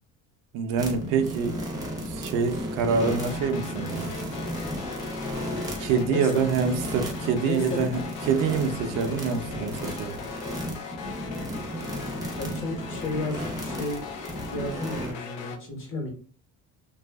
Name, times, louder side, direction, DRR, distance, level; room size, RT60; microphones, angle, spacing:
voice 1, 0.5-1.6 2.1-4.1 5.8-8.0 8.3-10.2, right 5 dB, 80° right, 0.5 m, -26 dB
sound 1, 0.8-15.1, equal, 10° right, 0.6 m, -34 dB
sound 2, 3.0-15.6, left 6 dB, 85° left, 0.6 m, -40 dB
voice 2, 6.1-6.5 7.5-7.8 12.4-14.0 14.5-16.1, left 2 dB, 40° left, 1.0 m, -32 dB
2.5 x 2.3 x 2.2 m
cardioid pair, 120°, 32 cm